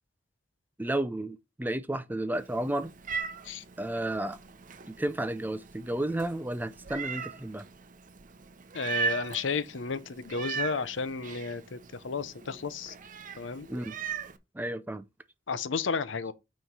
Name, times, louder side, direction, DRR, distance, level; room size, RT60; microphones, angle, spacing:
voice 1, 0.8-2.9 3.8-4.4 4.9-7.6 13.7-14.0 14.5-15.1, right 1 dB, 10° right, 0.5 m, -32 dB
Meow, 2.3-14.4, right 6 dB, 45° right, 0.7 m, -39 dB
voice 2, 8.7-12.9 13.4-13.7 15.5-16.3, left 5 dB, 85° left, 0.7 m, -33 dB
9.2 x 3.1 x 5.4 m
head